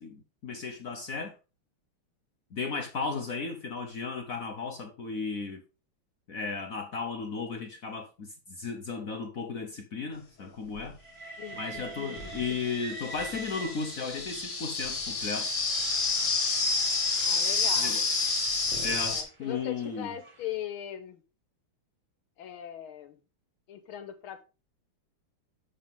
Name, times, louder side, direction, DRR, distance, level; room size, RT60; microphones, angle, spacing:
voice 1, 0.0-1.3 2.5-5.6 6.3-11.0 11.5-15.6 17.8-18.0 18.8-20.1, left 4 dB, 55° left, 1.0 m, -35 dB
sound 1, 10.8-10.9 11.8-19.2, left 4 dB, 35° left, 1.8 m, -29 dB
Train, 11.0-14.4 15.3-20.5, right 3 dB, 25° right, 0.7 m, -46 dB
voice 2, 11.4-12.6 17.2-18.0 19.0-21.2 22.4-23.2 23.7-24.4, left 10 dB, 75° left, 1.8 m, -40 dB
7.6 x 6.8 x 3.6 m
omnidirectional pair, 2.4 m